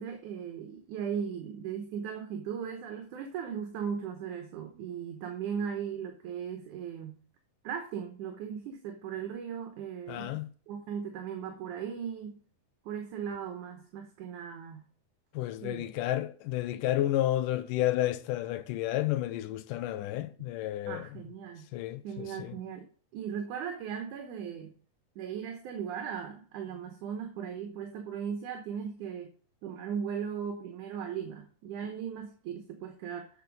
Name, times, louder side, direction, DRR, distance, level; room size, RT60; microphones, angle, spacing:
voice 1, 0.0-7.2 7.6-10.4 10.7-12.4 12.8-14.9 15.6-15.9 20.9-21.7 22.0-22.9 23.1-24.8 25.2-29.3 29.6-33.3, right 7 dB, 70° right, 2.4 m, -37 dB
voice 2, 10.1-10.5 15.3-21.0 21.7-22.5, left 14 dB, 85° left, 2.2 m, -31 dB
8.2 x 6.2 x 5.2 m
omnidirectional pair, 3.9 m